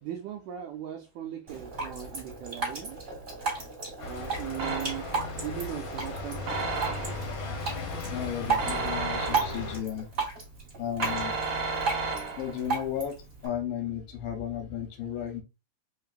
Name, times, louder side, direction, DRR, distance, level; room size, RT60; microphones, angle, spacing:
voice 1, 0.0-3.0 4.0-6.9 11.5-11.6, right 10 dB, 85° right, 1.7 m, -39 dB
Drip, 1.5-13.5, right 5 dB, 25° right, 1.5 m, -34 dB
sound 1, 4.0-9.8, left 2 dB, 65° left, 1.6 m, -37 dB
sound 2, 4.6-5.3 6.5-7.4 8.6-9.8 11.0-12.7, right 3 dB, 55° right, 1.8 m, -33 dB
voice 2, 8.1-10.1 10.8-11.3 12.4-13.1 13.4-15.4, left 9 dB, 85° left, 2.6 m, -34 dB
5.1 x 2.9 x 2.4 m
omnidirectional pair, 4.0 m